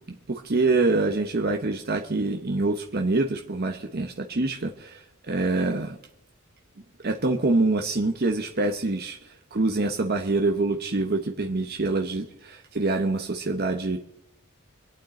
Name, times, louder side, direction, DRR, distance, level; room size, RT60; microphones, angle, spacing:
voice 1, 0.3-6.0 7.0-14.0, right 2 dB, 45° right, 3 dB, 1.0 m, -25 dB
26.0 x 9.0 x 4.2 m, 0.77 s
head